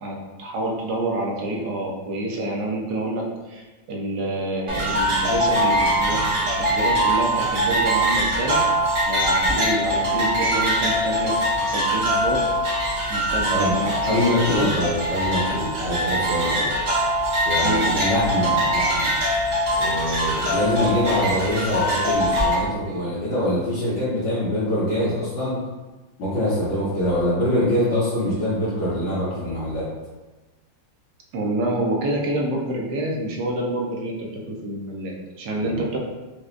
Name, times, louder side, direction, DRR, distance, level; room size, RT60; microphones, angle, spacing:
voice 1, 0.0-6.2 6.6-8.6 9.1-11.4 11.6-12.5 13.1-14.7 17.6-17.9 31.3-36.0, right 1 dB, 70° right, -1 dB, 1.1 m, -27 dB
sound 1, 4.7-22.5, equal, 55° right, 0.7 m, -22 dB
voice 2, 13.5-16.7 17.5-19.1 19.8-25.6 26.2-29.9 35.6-35.9, left 1 dB, 80° left, -12 dB, 1.8 m, -24 dB
4.8 x 2.2 x 2.5 m, 1.2 s
omnidirectional pair, 2.1 m